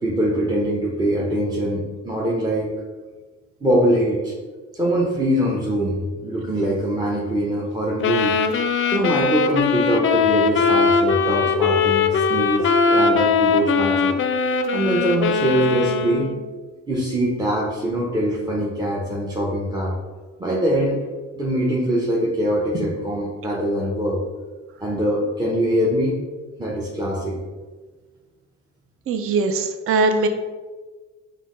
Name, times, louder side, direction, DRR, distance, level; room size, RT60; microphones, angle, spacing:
voice 1, 0.0-2.7 3.6-4.3 4.7-8.4 8.9-14.2 14.7-16.3 16.9-19.9 20.4-21.0 21.3-24.2 24.8-26.2 26.6-27.4, right 1 dB, 15° right, -5 dB, 0.7 m, -23 dB
Sax Tenor - A minor, 8.0-16.4, left 5 dB, 45° left, 0.4 m, -20 dB
voice 2, 29.1-30.3, right 3 dB, 50° right, 6 dB, 0.5 m, -20 dB
5.5 x 2.1 x 3.8 m, 1.3 s
cardioid pair, 90°, 30 cm